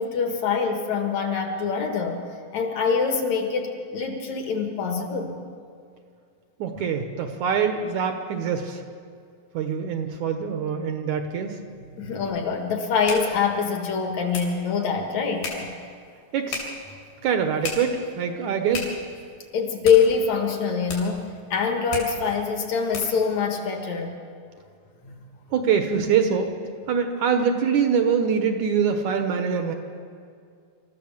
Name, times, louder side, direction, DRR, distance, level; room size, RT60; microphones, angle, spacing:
voice 1, 0.0-2.2 2.5-5.4 12.0-15.7 19.5-24.2 25.0-25.1, left 6 dB, 55° left, 4 dB, 2.6 m, -24 dB
voice 2, 6.6-8.8 9.5-11.6 16.3-16.7 17.2-18.9 25.5-26.5 26.9-29.7, right 6 dB, 65° right, 6 dB, 2.2 m, -24 dB
sound 1, 11.7-23.3, left 3 dB, 75° left, 5.5 m, -38 dB
27.0 x 14.0 x 7.3 m, 2.3 s
omnidirectional pair, 4.2 m